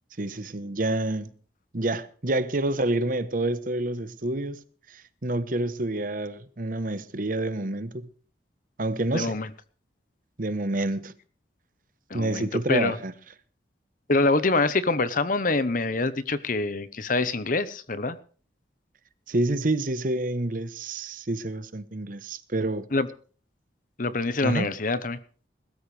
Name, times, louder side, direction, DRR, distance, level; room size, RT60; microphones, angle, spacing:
voice 1, 0.2-1.3 1.7-4.6 4.9-8.1 8.8-9.4 10.4-11.1 12.1-13.1 19.3-22.9 24.4-24.7, right 2 dB, 50° right, 1.0 m, -28 dB
voice 2, 9.1-9.5 12.1-13.0 14.1-18.2 22.9-23.1 24.0-25.2, left 3 dB, 50° left, 1.0 m, -25 dB
21.0 x 13.5 x 3.3 m
head